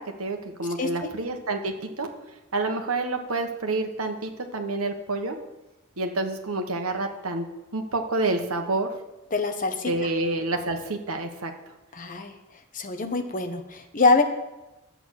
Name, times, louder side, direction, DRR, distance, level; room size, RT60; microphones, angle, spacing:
voice 1, 0.0-2.1 2.5-5.4 6.0-7.5 7.7-8.9 9.9-11.7, right 2 dB, 80° right, 4 dB, 1.3 m, -28 dB
voice 2, 0.8-1.1 9.3-9.9 11.9-12.3 12.7-14.2, left 3 dB, 40° left, 6 dB, 1.1 m, -24 dB
10.5 x 8.1 x 6.5 m, 1.0 s
head